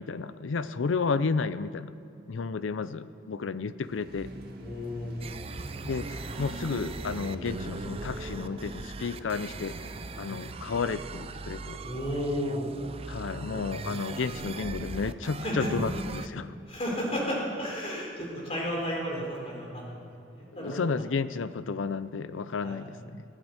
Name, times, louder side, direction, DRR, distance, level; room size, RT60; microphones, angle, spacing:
voice 1, 0.0-1.9 2.3-4.3 5.8-11.8 13.1-16.5 20.5-23.2, left 4 dB, 80° left, 15 dB, 0.5 m, -32 dB
sound 1, 3.8-10.8, right 1 dB, 55° right, 1.7 m, -43 dB
voice 2, 4.6-5.2 11.8-12.7 15.4-15.7 16.7-19.9 20.3-20.9 22.6-22.8, equal, 35° left, -3 dB, 3.8 m, -32 dB
sound 2, 5.2-16.3, right 3 dB, 30° right, 0.5 m, -39 dB
16.5 x 8.9 x 8.1 m, 2.7 s
head